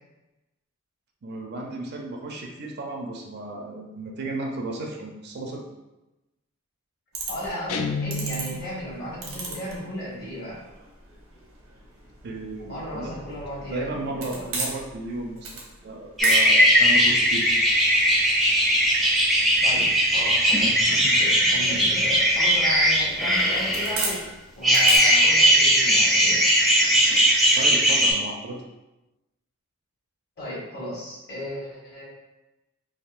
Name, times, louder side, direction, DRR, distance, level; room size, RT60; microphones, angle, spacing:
voice 1, 1.2-5.6 12.2-13.1 13.7-15.5 15.8-17.7 27.5-28.6, right 2 dB, 50° right, 1 dB, 0.5 m, -34 dB
sound 1, 7.1-25.0, right 3 dB, 85° right, 0.8 m, -38 dB
voice 2, 7.3-10.6 12.7-14.6 19.6-24.2 24.6-26.4 30.4-32.0, equal, 50° left, -5 dB, 1.2 m, -35 dB
Guitar, 7.7-8.9, left 3 dB, 85° left, 0.3 m, -30 dB
sound 2, 16.2-24.1 24.6-28.1, equal, ahead, 0.5 m, -19 dB
3.6 x 2.4 x 2.4 m, 1.0 s
head